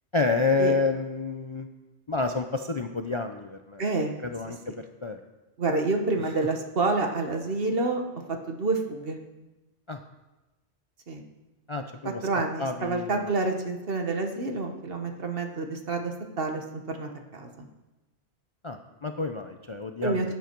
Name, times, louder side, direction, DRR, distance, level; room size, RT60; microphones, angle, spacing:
voice 1, 0.1-1.7 2.1-3.8 4.2-5.2 6.2-6.3 9.9-10.0 11.7-12.3 12.6-13.3 18.6-20.3, left 3 dB, 35° left, 6 dB, 0.5 m, -29 dB
voice 2, 3.8-4.2 4.7-4.8 5.6-8.0 8.5-9.2 11.1-11.2 12.2-17.7 20.0-20.3, right 3 dB, 55° right, 4 dB, 1.4 m, -28 dB
14.0 x 9.3 x 4.5 m, 1.1 s
omnidirectional pair, 1.2 m